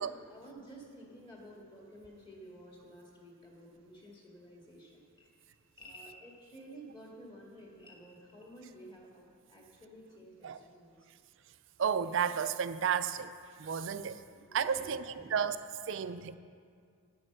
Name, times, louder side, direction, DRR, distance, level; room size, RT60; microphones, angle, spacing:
voice 1, 0.0-5.3 5.8-11.0 14.3-15.4 15.8-16.0, right 1 dB, 25° left, 2.0 m, -52 dB
voice 2, 11.8-13.3 13.6-14.2 14.5-15.6 15.9-16.3, right 7 dB, 60° right, 0.4 m, -32 dB
9.7 x 7.7 x 6.6 m
head